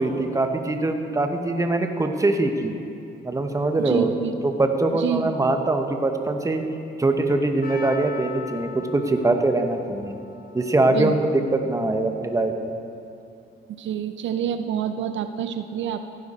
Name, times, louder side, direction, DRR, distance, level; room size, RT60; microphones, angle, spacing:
voice 1, 0.0-2.7 3.2-4.1 4.4-6.6 7.0-10.1 10.5-11.2 11.5-12.8, right 2 dB, 15° right, 5 dB, 1.1 m, -23 dB
voice 2, 3.8-4.3 4.9-5.3 10.9-11.2 13.8-16.0, right 9 dB, 70° right, 9 dB, 0.6 m, -27 dB
Percussion, 7.6-12.0 12.2-12.3, left 3 dB, 50° left, 1.8 m, -41 dB
15.5 x 10.0 x 4.3 m, 2.6 s
cardioid pair, 90°, 20 cm